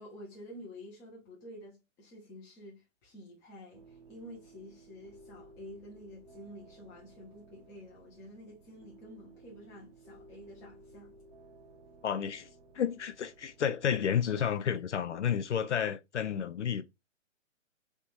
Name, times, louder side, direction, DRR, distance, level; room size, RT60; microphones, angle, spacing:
voice 1, 0.0-11.2, left 1 dB, 5° left, 0.8 m, -50 dB
sound 1, 3.7-13.8, right 2 dB, 30° right, 0.8 m, -57 dB
voice 2, 12.0-12.5 12.7-16.8, left 8 dB, 65° left, 0.6 m, -31 dB
3.4 x 3.0 x 4.2 m
hypercardioid pair, 160°, 38 cm